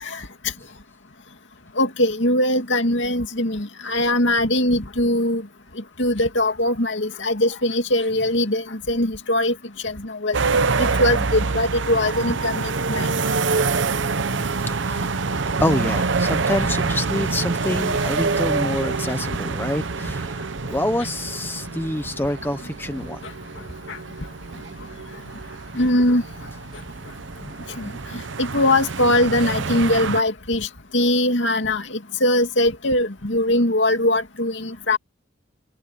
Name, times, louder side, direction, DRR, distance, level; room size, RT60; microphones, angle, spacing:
voice 1, 1.8-5.4 6.0-9.5 9.8-13.1 23.9-24.0 25.7-26.2 27.8-27.9 28.4-30.7 30.9-35.0, left 1 dB, 70° left, 2.4 m, -21 dB
sound 1, 10.3-30.2, right 4 dB, 70° right, 0.8 m, -26 dB
voice 2, 14.6-15.1 15.6-23.2, left 1 dB, 10° left, 0.7 m, -27 dB
head